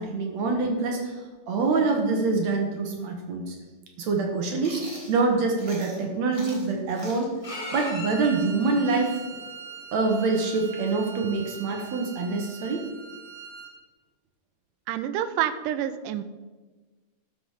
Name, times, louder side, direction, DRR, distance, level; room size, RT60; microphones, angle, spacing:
voice 1, 0.0-3.6 4.0-4.8 5.1-7.3 7.7-9.2 9.9-12.8, right 3 dB, 65° right, 2 dB, 1.8 m, -25 dB
Chewing mastication, 4.6-6.0 6.3-9.9, right 1 dB, 10° right, 1.8 m, -44 dB
Bowed string instrument, 7.4-13.7, right 2 dB, 25° left, 1.5 m, -40 dB
voice 2, 14.9-16.2, right 11 dB, 85° right, 11 dB, 1.9 m, -28 dB
12.0 x 5.8 x 4.9 m, 1.3 s
omnidirectional pair, 4.2 m